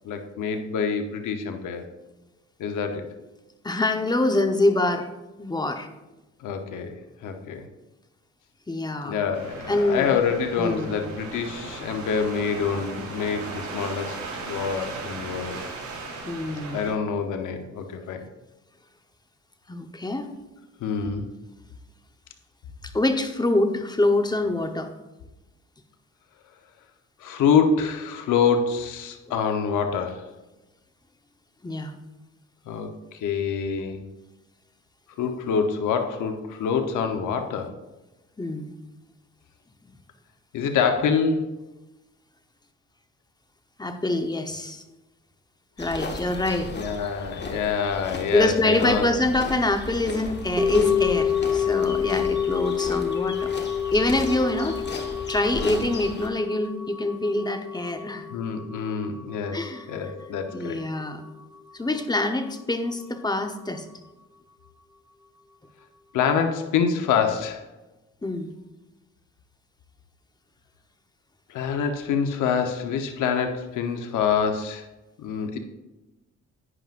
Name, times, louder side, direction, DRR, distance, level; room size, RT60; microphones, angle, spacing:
voice 1, 0.0-1.9 2.6-3.1 6.4-7.6 9.0-15.6 16.7-18.3 20.8-21.3 27.2-30.2 32.7-34.0 35.2-37.7 40.5-41.5 46.7-49.1 55.5-55.8 58.3-59.6 59.9-60.8 66.1-67.7 71.5-74.9 75.2-75.6, left 6 dB, 80° left, 6 dB, 1.0 m, -26 dB
voice 2, 3.6-5.1 5.4-5.9 8.7-9.2 9.7-10.1 10.6-10.9 16.3-17.0 19.7-20.3 22.9-24.9 31.6-32.0 38.4-38.7 43.8-44.8 45.8-46.7 48.3-53.5 53.9-54.8 55.3-58.3 59.5-59.9 60.5-61.2 61.7-63.8 68.2-68.5, left 2 dB, 15° left, 6 dB, 1.0 m, -25 dB
sound 1, 9.3-16.9, right 3 dB, 75° right, 3.4 m, -37 dB
sound 2, 45.8-56.3, left 3 dB, 35° left, 1.5 m, -36 dB
sound 3, 50.6-60.9 61.1-61.2, left 8 dB, 5° right, 1.9 m, -28 dB
11.0 x 9.2 x 2.5 m, 1.1 s
cardioid pair, 90°, 30 cm